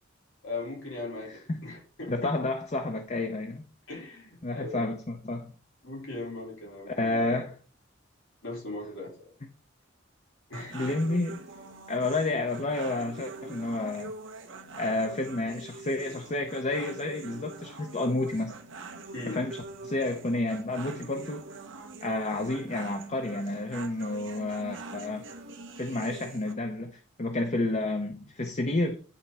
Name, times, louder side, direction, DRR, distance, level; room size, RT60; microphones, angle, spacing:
voice 1, 0.4-2.3 3.9-4.9 5.8-7.5 8.4-9.3 10.5-10.9 19.1-19.4, left 2 dB, 85° left, 4.7 m, -39 dB
voice 2, 2.1-3.6 4.4-5.5 6.9-7.5 10.7-11.4 11.9-14.1 14.8-18.5 19.3-21.4 22.0-25.3 25.8-29.0, left 2 dB, 40° left, 0.8 m, -30 dB
sound 1, 10.5-26.5, right 3 dB, 85° right, 1.2 m, -44 dB
10.0 x 4.5 x 4.2 m
head